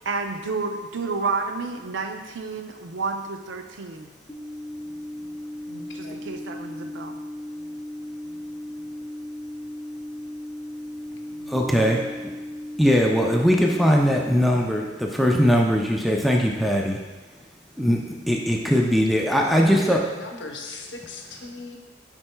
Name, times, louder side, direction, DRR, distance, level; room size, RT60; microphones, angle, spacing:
voice 1, 0.0-4.1 5.9-7.2, right 4 dB, 75° right, 5 dB, 0.5 m, -30 dB
sound 1, 4.3-14.3, left 1 dB, 15° left, 0.9 m, -36 dB
voice 2, 5.7-6.2 11.3-12.0 17.8-18.2 19.5-21.8, left 2 dB, 75° left, 2 dB, 0.8 m, -40 dB
voice 3, 11.5-12.0 12.8-17.0 17.8-20.0, equal, ahead, -1 dB, 0.4 m, -20 dB
9.7 x 4.4 x 2.2 m, 1.3 s
head